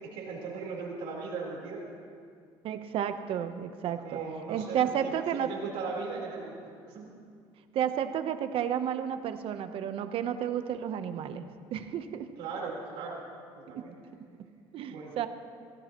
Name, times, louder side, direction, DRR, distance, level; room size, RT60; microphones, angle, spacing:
voice 1, 0.0-1.9 3.8-7.1 12.4-13.2 13.6-14.0 14.9-15.1, right 4 dB, 85° right, -3 dB, 4.0 m, -38 dB
voice 2, 2.6-4.2 4.5-5.5 7.7-12.3 13.7-13.8 14.7-15.3, right 9 dB, 60° right, 9 dB, 0.9 m, -32 dB
23.5 x 15.5 x 3.0 m, 2.2 s
cardioid pair, 100°, 10 cm